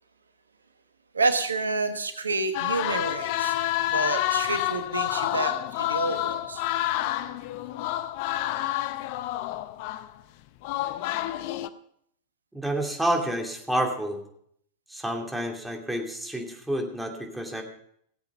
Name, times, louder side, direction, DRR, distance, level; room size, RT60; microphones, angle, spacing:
voice 1, 1.1-3.6 3.8-6.6, right 3 dB, 85° right, 8 dB, 1.1 m, -29 dB
sound 1, 2.5-10.1 10.6-11.7, left 14 dB, 50° left, 0.6 m, -28 dB
voice 2, 12.5-14.2 14.9-17.6, right 1 dB, 5° right, 1 dB, 2.5 m, -29 dB
17.5 x 8.1 x 5.4 m, 0.68 s
figure-of-eight pair, 95°, 0 cm